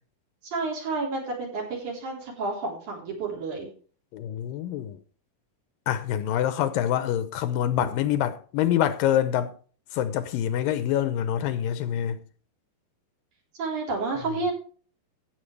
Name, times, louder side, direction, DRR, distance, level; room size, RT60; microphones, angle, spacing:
voice 1, 0.4-3.7 13.6-14.5, right 3 dB, 55° right, 5.1 m, -30 dB
voice 2, 4.1-5.0 5.9-9.5 9.9-12.2, left 11 dB, 80° left, 2.4 m, -26 dB
16.0 x 8.2 x 3.3 m
omnidirectional pair, 4.2 m